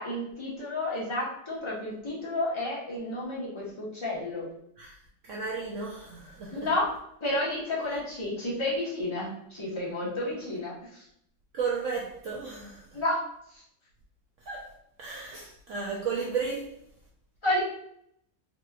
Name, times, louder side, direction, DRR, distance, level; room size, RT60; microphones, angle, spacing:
voice 1, 0.0-4.5 6.5-6.9 7.2-11.0 12.9-13.2 13.5-13.6 17.4-17.6, left 1 dB, 25° left, 0.8 m, -31 dB
voice 2, 5.2-6.7 7.9-8.0 11.5-13.0 14.4-14.7 15.0-16.7, right 5 dB, 75° right, 0.7 m, -34 dB
4.0 x 2.9 x 2.3 m
omnidirectional pair, 1.9 m